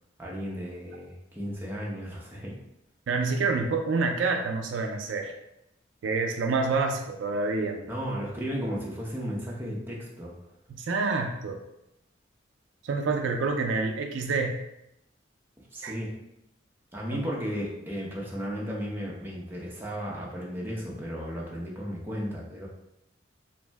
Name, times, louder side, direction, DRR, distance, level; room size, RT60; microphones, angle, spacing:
voice 1, 0.2-2.6 7.7-10.5 15.7-16.2 16.9-22.7, equal, 10° right, -4 dB, 0.5 m, -34 dB
voice 2, 3.1-5.3 6.0-7.7 10.7-11.6 12.8-14.5 15.8-15.9 17.1-17.2, right 4 dB, 75° right, 4 dB, 0.3 m, -27 dB
2.6 x 2.0 x 3.3 m, 0.84 s
head